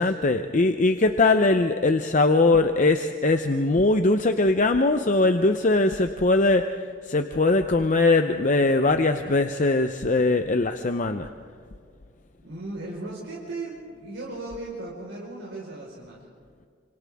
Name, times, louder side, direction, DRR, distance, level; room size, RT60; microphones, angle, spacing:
voice 1, 0.0-6.6 7.1-11.3, left 2 dB, 40° left, 7 dB, 0.7 m, -21 dB
voice 2, 12.4-16.3, right 2 dB, 90° right, -5 dB, 4.7 m, -36 dB
27.5 x 26.5 x 3.6 m, 2.1 s
head